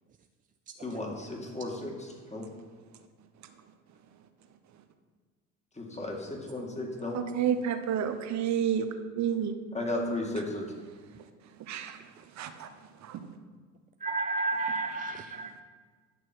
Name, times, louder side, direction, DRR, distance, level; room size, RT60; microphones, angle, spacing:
voice 1, 0.8-2.5 5.7-7.2 9.7-10.7, left 2 dB, 20° left, 0 dB, 2.3 m, -35 dB
voice 2, 7.1-8.9 9.2-9.5 11.7-12.7 13.0-13.3, right 9 dB, 45° right, 9 dB, 0.9 m, -30 dB
voice 3, 14.0-15.6, right 3 dB, 20° right, 7 dB, 0.4 m, -31 dB
10.5 x 6.2 x 4.6 m, 1.5 s
hypercardioid pair, 60°, 37 cm